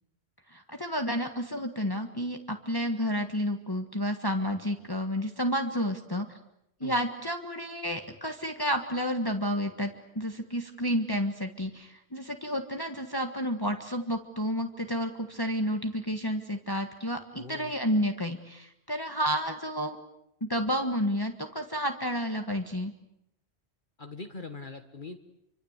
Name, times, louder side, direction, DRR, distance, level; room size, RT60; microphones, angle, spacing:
voice 1, 0.5-6.3 6.8-20.0 20.4-22.9, equal, 20° left, 5 dB, 1.6 m, -30 dB
voice 2, 17.4-17.7 24.0-25.2, left 3 dB, 50° left, 6 dB, 1.5 m, -42 dB
28.5 x 25.0 x 8.2 m, 0.82 s
omnidirectional pair, 1.1 m